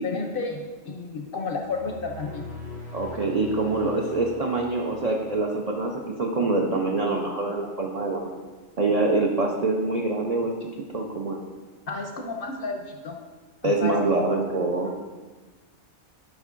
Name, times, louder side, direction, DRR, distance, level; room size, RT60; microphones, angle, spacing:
voice 1, 0.0-2.5 11.9-13.2 13.6-14.2, left 4 dB, 60° left, 2 dB, 0.6 m, -32 dB
sound 1, 1.6-5.9, left 2 dB, 50° right, 1.5 m, -42 dB
voice 2, 2.9-8.3 8.8-10.5 10.9-11.4 13.6-14.9, right 2 dB, 70° right, 0 dB, 0.3 m, -25 dB
9.4 x 5.3 x 2.5 m, 1.3 s
omnidirectional pair, 1.4 m